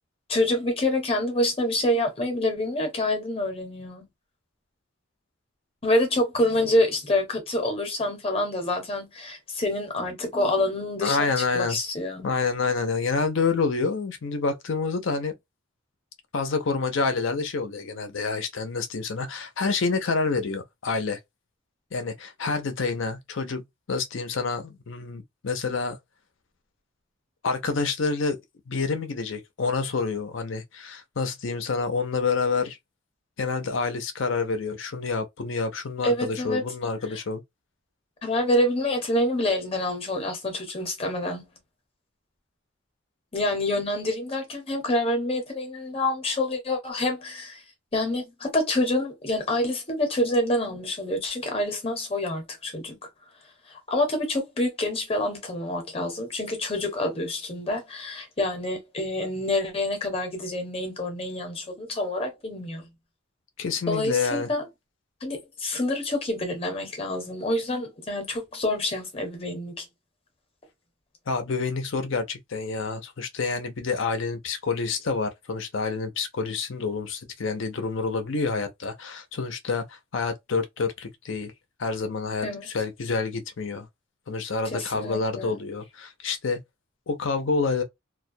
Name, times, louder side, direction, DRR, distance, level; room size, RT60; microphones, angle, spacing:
voice 1, 0.3-4.0 5.8-12.3 36.0-36.6 38.2-41.5 43.3-47.6 47.9-53.0 53.7-62.9 63.9-64.7 65.2-69.9 82.4-82.7 84.7-85.6, left 1 dB, 30° left, 0.8 m, -27 dB
voice 2, 11.0-11.8 12.2-15.3 16.3-21.2 21.9-26.0 27.4-28.4 28.7-32.8 33.4-37.4 63.6-64.5 71.3-81.5 81.8-83.9 84.3-86.6 87.1-87.8, left 4 dB, 70° left, 0.6 m, -28 dB
2.2 x 2.1 x 2.6 m
head